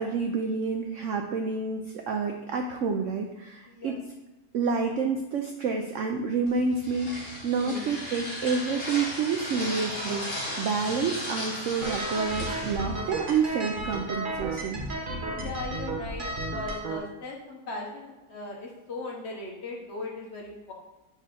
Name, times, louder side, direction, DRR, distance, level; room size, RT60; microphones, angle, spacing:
voice 1, 0.0-4.0 4.5-14.8, right 5 dB, 70° right, 3 dB, 0.7 m, -29 dB
voice 2, 3.7-4.0 7.5-7.9 15.3-20.7, left 2 dB, 45° left, -1 dB, 1.1 m, -38 dB
sound 1, 6.5-14.0, left 1 dB, 25° left, 2.4 m, -36 dB
sound 2, 11.8-17.0, right 2 dB, 40° right, 0.8 m, -33 dB
5.3 x 4.2 x 5.0 m, 1.1 s
omnidirectional pair, 1.8 m